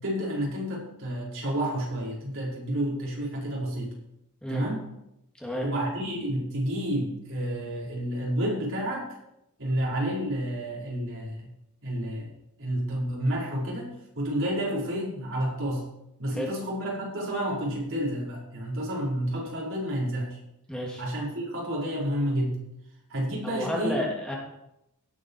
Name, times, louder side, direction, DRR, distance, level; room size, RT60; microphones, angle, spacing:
voice 1, 0.0-3.9 4.5-4.9 5.6-9.1 9.6-11.5 11.8-12.3 12.6-15.9 16.2-20.4 21.0-22.6 23.1-24.0, equal, 60° right, -4 dB, 5.3 m, -30 dB
voice 2, 20.7-21.0 23.4-24.3, left 1 dB, 5° left, -3 dB, 3.0 m, -31 dB
17.5 x 9.2 x 5.0 m, 0.84 s
head